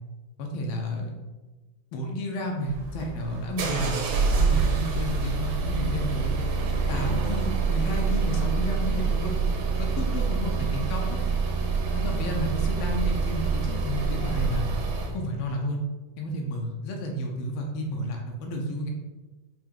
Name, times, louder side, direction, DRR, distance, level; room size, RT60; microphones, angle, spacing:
voice 1, 0.4-1.1 1.9-4.0 4.4-6.4 6.9-9.3 9.8-11.2 11.9-14.6 15.1-15.8 16.2-18.9, equal, 80° left, 1 dB, 1.4 m, -31 dB
sound 1, 2.6-15.2, right 4 dB, 70° right, 1.1 m, -26 dB
4.6 x 2.2 x 3.5 m, 1.2 s
omnidirectional pair, 2.2 m